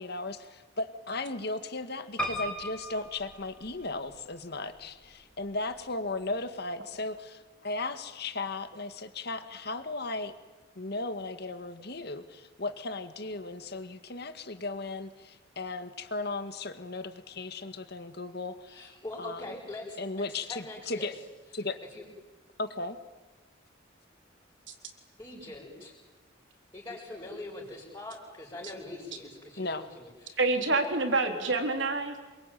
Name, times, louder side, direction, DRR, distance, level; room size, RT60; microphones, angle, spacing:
voice 1, 0.0-10.3 10.8-19.4 20.0-21.1 21.5-21.8 22.6-23.0 29.6-29.9, left 2 dB, 55° left, 9 dB, 1.9 m, -36 dB
Piano, 2.2-4.2 4.8-5.5 5.8-5.9 6.1-6.2, equal, 5° left, 4.5 m, -37 dB
voice 2, 18.7-21.1 21.9-22.0 25.2-25.9 26.7-30.6, left 2 dB, 20° left, -7 dB, 6.3 m, -43 dB
voice 3, 30.4-32.2, right 3 dB, 70° right, 4 dB, 4.0 m, -27 dB
28.0 x 23.0 x 9.3 m, 1.2 s
head